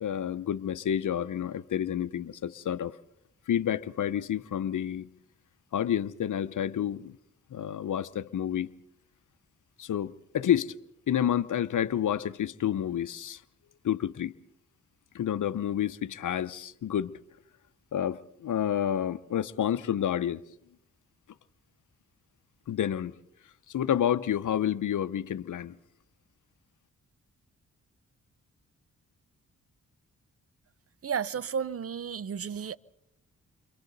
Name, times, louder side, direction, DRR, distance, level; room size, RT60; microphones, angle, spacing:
voice 1, 0.0-3.0 3.5-5.1 5.7-7.2 7.5-8.7 9.8-10.7 11.1-13.4 13.8-14.3 15.1-17.2 17.9-20.4 22.7-23.1 23.7-25.7, left 10 dB, 70° left, 0.7 m, -29 dB
voice 2, 31.0-32.8, right 7 dB, 45° right, 0.7 m, -32 dB
30.0 x 25.5 x 4.0 m
cardioid pair, 60°, 32 cm